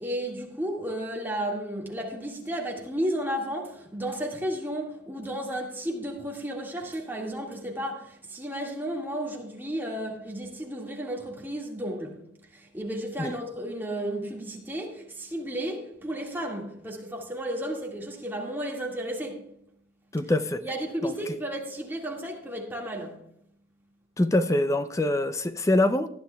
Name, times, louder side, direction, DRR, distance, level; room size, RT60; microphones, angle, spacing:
voice 1, 0.0-12.2 12.5-19.4 20.6-23.2, right 1 dB, 10° right, 1.9 m, -33 dB
voice 2, 20.1-20.6 21.0-21.4 24.2-26.1, left 1 dB, 15° left, 0.4 m, -24 dB
19.0 x 10.5 x 2.3 m
head